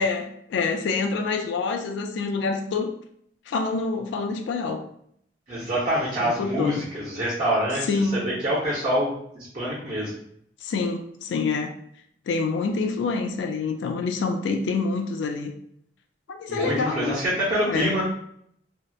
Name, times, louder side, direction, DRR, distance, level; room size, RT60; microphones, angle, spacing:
voice 1, 0.0-2.9 3.5-4.8 6.2-6.9 7.8-8.4 10.6-11.7 12.3-15.5 16.3-17.2 17.7-17.9, left 4 dB, 80° left, 5 dB, 0.3 m, -26 dB
voice 2, 5.5-10.1 16.5-18.0, equal, 40° right, -8 dB, 0.7 m, -26 dB
2.7 x 2.0 x 2.2 m, 0.69 s
head